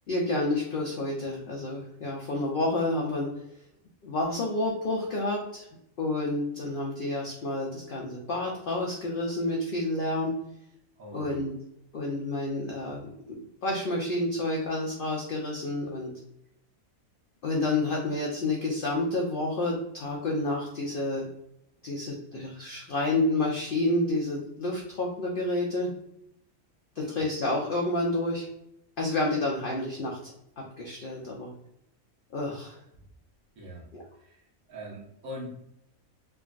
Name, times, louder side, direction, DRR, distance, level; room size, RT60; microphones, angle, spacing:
voice 1, 0.1-3.3 4.0-5.7 6.0-10.3 11.1-11.5 11.9-13.0 13.6-16.1 17.4-21.3 21.8-25.9 27.0-28.5 29.0-30.3 30.8-31.5 32.3-32.8 33.9-34.0, left 2 dB, 65° left, -2 dB, 0.5 m, -29 dB
voice 2, 11.0-11.4 27.0-27.1 33.6-33.9 34.2-34.4 34.7-35.6, equal, 80° right, -3 dB, 1.3 m, -41 dB
3.4 x 2.2 x 2.4 m, 0.76 s
omnidirectional pair, 1.5 m